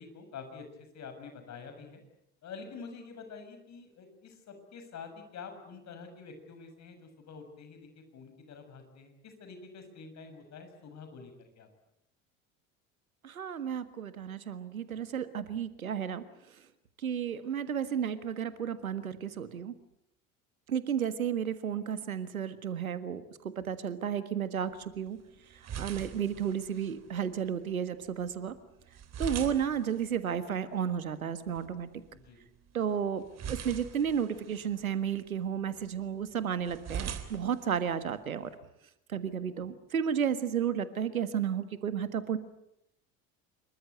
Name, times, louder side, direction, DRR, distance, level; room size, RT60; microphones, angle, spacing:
voice 1, 0.0-2.0 2.4-11.7 32.1-32.4, left 5 dB, 40° left, 7 dB, 7.1 m, -47 dB
voice 2, 13.2-16.2 17.0-19.7 20.7-25.2 25.8-28.5 29.2-31.9 32.7-38.5 39.1-42.4, right 8 dB, 80° right, 12 dB, 1.7 m, -32 dB
sound 1, 24.6-38.6, right 8 dB, 40° right, 3.3 m, -45 dB
26.5 x 23.0 x 8.2 m, 0.79 s
figure-of-eight pair, 70°, 41 cm